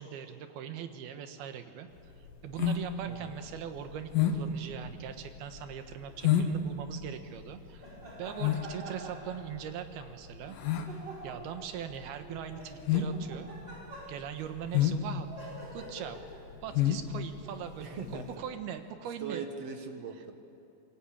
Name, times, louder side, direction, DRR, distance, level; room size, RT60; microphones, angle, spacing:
voice 1, 0.0-1.9 2.4-7.9 8.2-10.6 11.2-13.5 14.1-16.2 16.6-19.4, right 8 dB, 85° right, 7 dB, 3.3 m, -41 dB
sound 1, 2.0-18.3, left 9 dB, 65° left, 3.1 m, -32 dB
sound 2, 6.0-6.4 7.8-9.9 10.9-11.7 12.2-14.4 15.3-16.5 17.4-17.6, right 1 dB, 25° right, 6.1 m, -46 dB
voice 2, 17.8-18.4 19.2-20.3, right 5 dB, 55° right, 5 dB, 2.2 m, -40 dB
26.5 x 22.0 x 8.7 m, 2.8 s
omnidirectional pair, 4.4 m